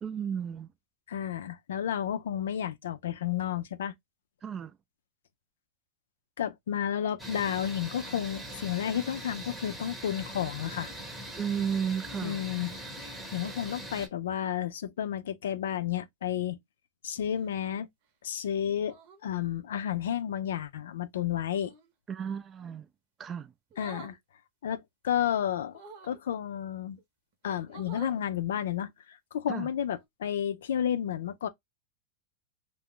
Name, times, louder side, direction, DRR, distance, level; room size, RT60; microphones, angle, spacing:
voice 1, 0.0-0.7 4.4-4.7 11.4-12.4 22.1-22.9 23.2-23.5 29.5-29.7, right 7 dB, 25° right, 0.4 m, -33 dB
voice 2, 1.1-3.9 6.4-10.9 12.2-12.7 13.0-16.6 17.0-17.9 18.2-19.0 19.2-21.7 23.8-24.2 24.6-27.0 27.4-31.5, left 10 dB, 80° left, 0.5 m, -32 dB
sound 1, 7.2-14.1, right 1 dB, 5° right, 0.8 m, -41 dB
sound 2, 17.2-17.6 18.8-19.3 21.5-21.9 23.7-24.2 25.7-26.2 27.0-27.1 27.4-28.2 29.8-30.1, right 5 dB, 50° right, 0.8 m, -49 dB
2.4 x 2.1 x 3.6 m
hypercardioid pair, 120°, 0 cm